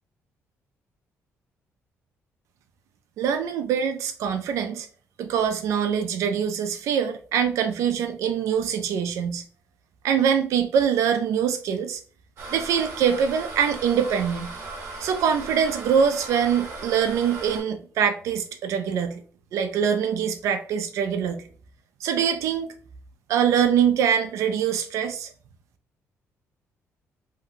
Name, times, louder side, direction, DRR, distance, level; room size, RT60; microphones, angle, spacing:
voice 1, 3.2-4.9 5.2-9.4 10.0-12.0 12.5-14.5 15.0-19.2 19.5-21.4 22.0-22.7 23.3-25.3, right 8 dB, 75° right, 8 dB, 0.5 m, -24 dB
sound 1, 12.4-17.6, right 3 dB, 55° right, 1.0 m, -37 dB
2.7 x 2.2 x 3.7 m, 0.42 s
cardioid pair, 180°, 5 cm